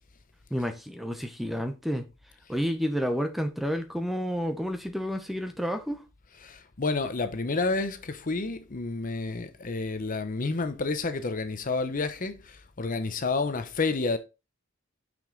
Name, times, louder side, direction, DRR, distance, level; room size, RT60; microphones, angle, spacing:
voice 1, 0.5-2.1 2.5-6.0, equal, ahead, 0.8 m, -30 dB
voice 2, 6.4-14.2, left 3 dB, 40° left, 0.7 m, -30 dB
6.1 x 5.2 x 3.8 m
head